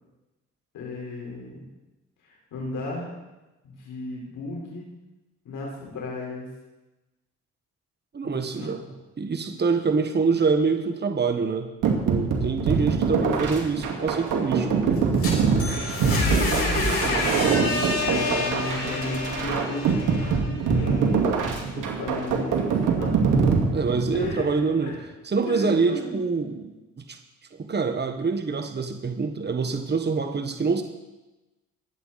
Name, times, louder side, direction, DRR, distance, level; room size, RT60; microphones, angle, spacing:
voice 1, 0.7-1.6 2.2-3.1 3.6-4.8 5.4-6.5 8.6-8.9 12.5-12.7 16.3-21.3 21.7-23.1 24.1-25.0 25.4-26.1, left 2 dB, 85° left, -2 dB, 4.5 m, -34 dB
voice 2, 8.1-8.8 9.2-11.7 12.0-14.7 23.7-25.0 25.2-27.2 27.5-30.8, right 4 dB, 35° right, 6 dB, 1.4 m, -25 dB
sound 1, 11.8-24.4, right 5 dB, 80° right, 2.3 m, -24 dB
sound 2, 15.0-20.8, left 2 dB, 45° left, 5.5 m, -28 dB
22.5 x 8.4 x 4.2 m, 1.0 s
cardioid pair, 75°, 31 cm